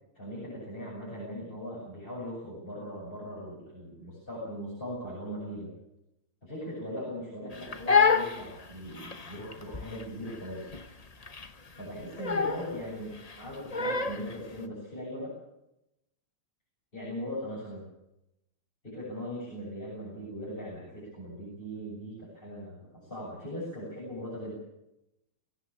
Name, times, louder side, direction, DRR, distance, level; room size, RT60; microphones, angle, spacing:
voice 1, 0.1-5.7 6.4-10.7 11.8-15.3 16.9-17.9 18.8-24.6, equal, 25° left, -5 dB, 7.7 m, -39 dB
Crying sobbing, 7.5-14.4, left 5 dB, 40° left, 0.5 m, -29 dB
21.0 x 17.5 x 8.6 m, 0.88 s
omnidirectional pair, 2.4 m